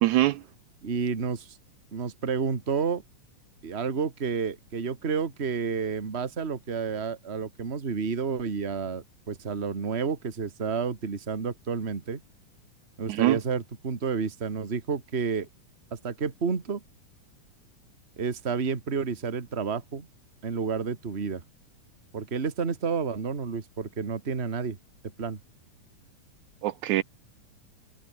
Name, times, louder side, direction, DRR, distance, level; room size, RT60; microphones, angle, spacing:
voice 1, 0.0-0.4 13.1-13.4 26.6-27.0, right 16 dB, 75° right, 2.0 m, -23 dB
voice 2, 0.8-1.6 1.9-3.0 3.6-12.2 13.0-15.5 15.9-16.8 18.2-20.1 20.4-21.4 22.1-24.8 25.2-25.4, right 5 dB, 25° right, 1.8 m, -30 dB
omnidirectional pair, 3.6 m